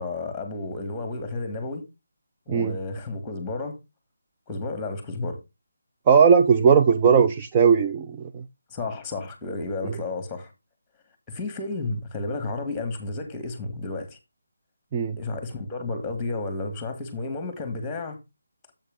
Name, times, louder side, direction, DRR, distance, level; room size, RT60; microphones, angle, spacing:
voice 1, 0.0-1.9 2.5-3.8 4.5-5.4 8.7-10.5 11.3-14.2 15.2-18.2, left 3 dB, 10° left, 1.8 m, -32 dB
voice 2, 6.1-8.4 14.9-15.2, right 6 dB, 20° right, 0.5 m, -18 dB
7.7 x 6.4 x 3.7 m
figure-of-eight pair, 160°, 0 cm